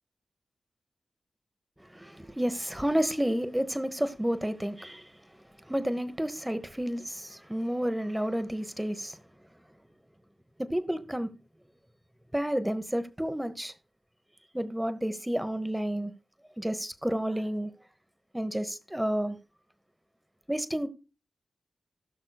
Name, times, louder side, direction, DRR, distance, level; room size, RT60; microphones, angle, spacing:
voice 1, 2.0-5.0 5.7-7.0 7.3-9.1 10.7-11.3 12.3-13.7 14.5-16.1 16.6-17.7 18.3-19.4 20.5-20.9, equal, 10° right, 1.0 m, -30 dB
18.0 x 6.1 x 2.3 m
cardioid pair, 70°, 0 cm